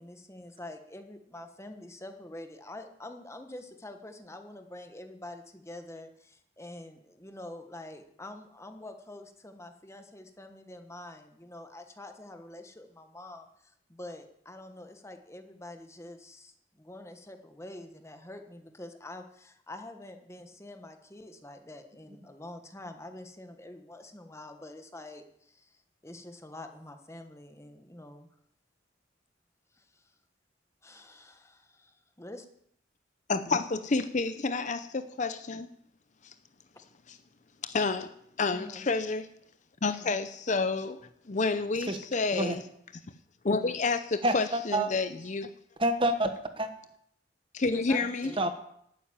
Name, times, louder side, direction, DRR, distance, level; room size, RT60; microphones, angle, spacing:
voice 1, 0.0-28.3 29.7-30.1 30.8-32.5 38.5-38.9 47.7-48.4, left 1 dB, 15° left, 7 dB, 1.3 m, -46 dB
voice 2, 33.3-35.7 36.2-36.3 37.1-37.2 37.6-38.1 38.4-39.3 39.8-41.0 41.3-42.6 43.4-45.5 47.5-48.3, left 3 dB, 40° left, 11 dB, 0.6 m, -29 dB
voice 3, 44.2-44.9 45.8-46.7 48.4-48.5, right 1 dB, 25° right, 8 dB, 1.3 m, -28 dB
12.0 x 9.2 x 8.8 m, 0.71 s
head